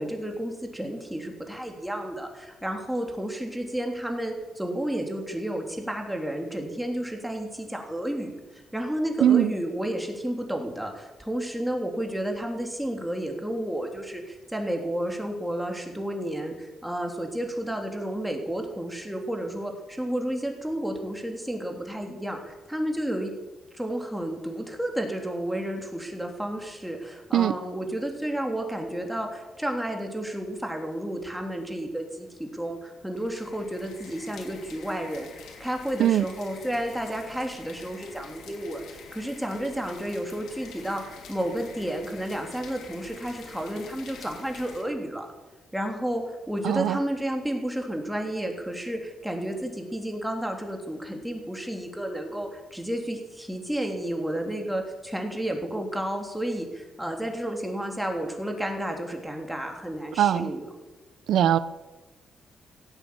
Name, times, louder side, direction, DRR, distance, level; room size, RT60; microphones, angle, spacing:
voice 1, 0.0-23.3 23.7-45.3 45.7-60.7, right 1 dB, 5° right, 2 dB, 3.3 m, -31 dB
sound 1, 33.1-44.8, left 5 dB, 85° left, 2.9 m, -47 dB
voice 2, 46.6-47.0 60.2-60.5 61.3-61.6, right 10 dB, 80° right, 15 dB, 0.6 m, -20 dB
16.5 x 9.2 x 8.7 m, 1.1 s
cardioid pair, 90°, 0 cm